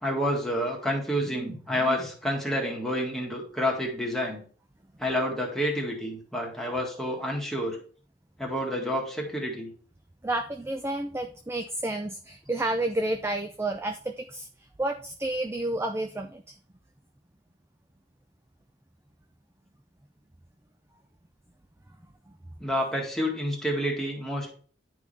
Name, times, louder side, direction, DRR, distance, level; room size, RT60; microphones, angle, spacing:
voice 1, 0.0-4.4 5.0-7.8 8.4-9.7 22.6-24.5, equal, ahead, -2 dB, 1.9 m, -29 dB
voice 2, 10.2-14.5 14.8-16.4, right 1 dB, 15° right, 5 dB, 0.4 m, -30 dB
10.5 x 4.8 x 3.5 m, 0.43 s
head